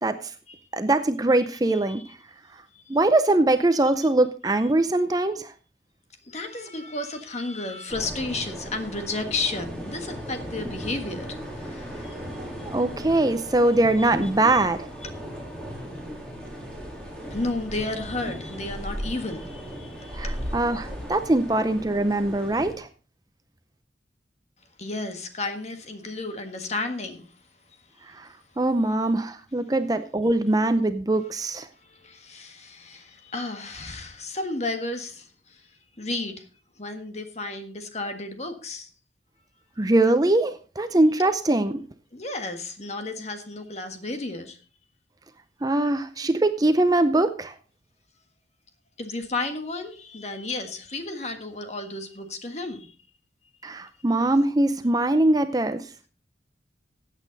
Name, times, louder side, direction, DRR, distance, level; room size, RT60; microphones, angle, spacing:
voice 1, 0.0-0.3 0.7-2.0 2.9-5.5 12.6-14.8 20.1-22.9 28.1-28.3 28.6-31.7 39.8-41.8 45.6-47.5 53.6-55.8, right 2 dB, 20° right, 10 dB, 0.6 m, -22 dB
voice 2, 1.7-2.1 2.7-3.0 6.2-12.2 14.0-14.1 14.5-14.7 15.0-15.1 17.3-20.5 24.8-27.3 31.8-35.7 36.0-36.4 36.8-38.9 42.1-44.6 49.0-52.9, left 2 dB, 35° left, 7 dB, 1.6 m, -33 dB
sound 1, 7.9-22.7, equal, 5° left, 3.8 m, -36 dB
15.5 x 8.3 x 4.0 m, 0.37 s
head